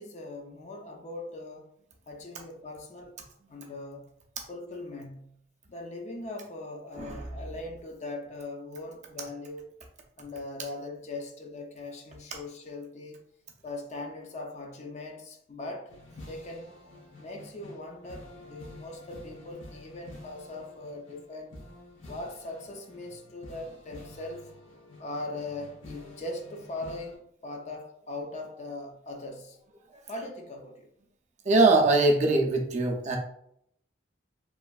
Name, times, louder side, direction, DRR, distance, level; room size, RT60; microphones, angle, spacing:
voice 1, 0.0-1.7 2.1-3.2 3.5-4.1 4.5-5.4 5.7-9.7 10.2-13.2 13.6-15.9 16.3-16.7 17.2-21.5 22.1-24.5 25.0-29.6 30.1-30.9, left 2 dB, 35° left, 0.4 m, -40 dB
voice 2, 7.0-7.3 31.5-33.2, right 2 dB, 40° right, 0.4 m, -22 dB
sound 1, 15.9-27.2, left 1 dB, 85° left, 0.9 m, -49 dB
3.0 x 2.5 x 2.3 m
head